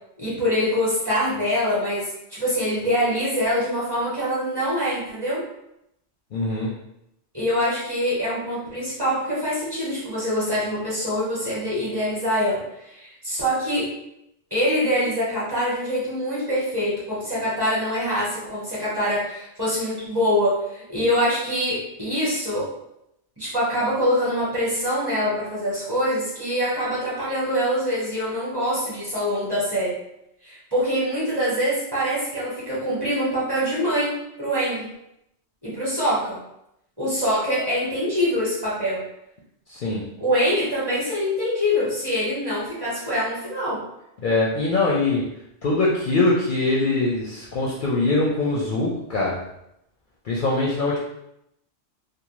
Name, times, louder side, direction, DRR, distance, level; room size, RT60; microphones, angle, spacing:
voice 1, 0.2-5.4 7.3-13.9 14.5-22.7 23.4-30.0 30.4-34.9 35.6-36.4 37.0-39.0 40.2-43.8, equal, 25° right, -8 dB, 0.9 m, -24 dB
voice 2, 6.3-6.7 39.7-40.0 44.2-45.2 45.6-49.4 50.2-51.0, left 2 dB, 60° left, -5 dB, 0.6 m, -22 dB
2.6 x 2.1 x 3.0 m, 0.81 s
omnidirectional pair, 1.2 m